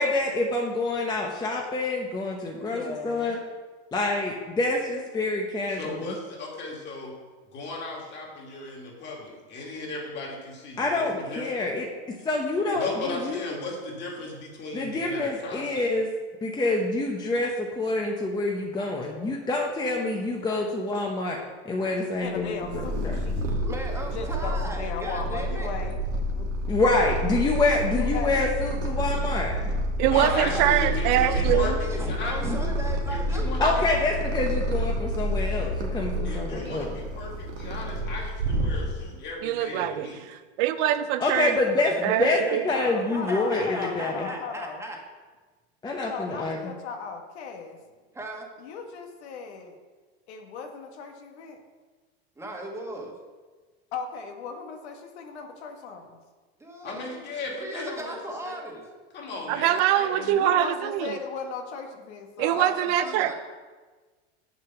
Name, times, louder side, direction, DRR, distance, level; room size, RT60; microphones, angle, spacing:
voice 1, 0.0-3.4 3.9-6.1 10.8-11.9 12.2-13.4 14.7-16.1 16.4-21.4 21.7-22.8 26.7-29.5 32.4-32.7 33.6-36.9 41.2-42.4 42.6-44.3 45.8-46.6, left 2 dB, 15° left, 0 dB, 0.8 m, -27 dB
voice 2, 2.7-3.4 22.2-23.5 24.1-26.0 26.3-26.5 27.9-28.5 42.7-44.8 46.1-47.8 48.6-49.7 50.3-51.6 53.9-56.2 59.4-59.5 60.1-62.7 63.0-63.3, left 5 dB, 80° left, 4 dB, 1.6 m, -37 dB
voice 3, 5.7-7.1 7.5-11.5 12.7-15.9 30.0-32.4 33.1-33.9 36.2-40.2 56.8-58.2 58.4-58.5 59.1-60.4, left 2 dB, 35° left, -2 dB, 2.6 m, -36 dB
Purr, 22.3-39.2, equal, 90° right, 1.7 m, -29 dB
voice 4, 23.4-25.7 26.4-26.8 29.9-31.0 31.2-33.5 41.9-42.6 43.0-45.0 48.1-48.5 52.3-53.1 56.6-57.2 57.6-58.8 62.5-63.3, right 1 dB, 10° right, 0 dB, 1.4 m, -37 dB
voice 5, 30.0-31.8 39.4-41.5 42.0-42.6 59.5-61.2 62.4-63.3, right 12 dB, 50° right, 11 dB, 0.5 m, -24 dB
7.4 x 6.8 x 5.9 m, 1.4 s
supercardioid pair, 135°, 33 cm